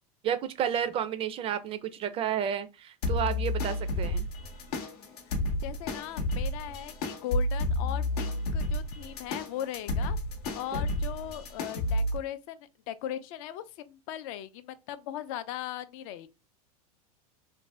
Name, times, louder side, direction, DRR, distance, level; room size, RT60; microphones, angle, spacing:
voice 1, 0.2-4.3 10.7-10.8, right 9 dB, 30° right, 0.3 m, -31 dB
sound 1, 3.0-12.2, left 1 dB, 80° left, 0.8 m, -31 dB
voice 2, 5.3-10.2 10.5-16.3, left 12 dB, 60° left, 0.4 m, -39 dB
2.5 x 2.1 x 3.2 m
supercardioid pair, 120°, 19 cm